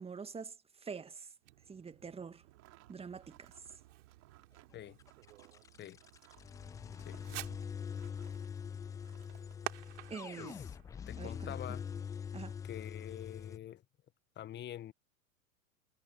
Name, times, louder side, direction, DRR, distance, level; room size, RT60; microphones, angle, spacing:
voice 1, 0.0-1.3 1.7-2.4 2.9-3.5 10.1-10.6 11.2-11.5 12.3-12.6, right 5 dB, 15° right, 2.1 m, -45 dB
Fireworks, 1.4-12.1, right 15 dB, 60° right, 4.9 m, -52 dB
sound 1, 2.4-8.6 9.0-9.6, right 17 dB, 35° right, 5.1 m, -64 dB
sound 2, 5.0-13.6, left 7 dB, 10° left, 0.4 m, -44 dB
voice 2, 11.1-11.8 12.6-13.8 14.3-14.9, left 12 dB, 25° left, 1.6 m, -45 dB
figure-of-eight pair, 90°, 41 cm